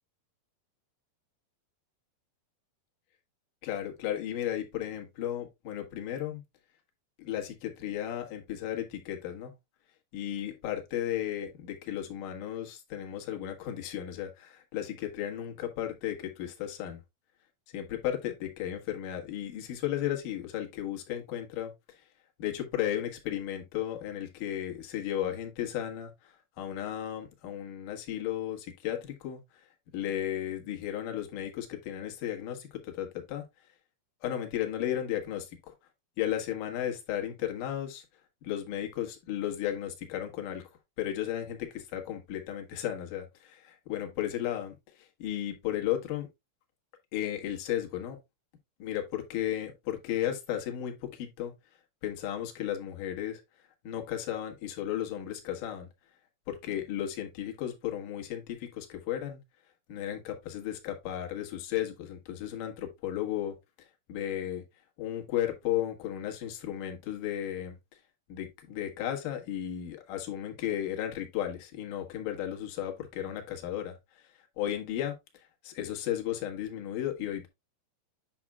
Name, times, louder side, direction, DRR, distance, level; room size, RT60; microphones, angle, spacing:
voice 1, 3.6-6.4 7.2-9.5 10.1-17.0 17.7-22.0 22.4-29.7 29.9-33.4 34.2-35.7 36.2-38.0 38.4-40.6 41.0-46.3 47.1-48.2 48.8-51.5 52.0-53.4 53.8-55.9 56.5-59.4 59.9-64.6 65.0-68.0 68.3-77.5, left 11 dB, 65° left, 2.7 m, -34 dB
8.6 x 5.9 x 2.2 m
omnidirectional pair, 4.4 m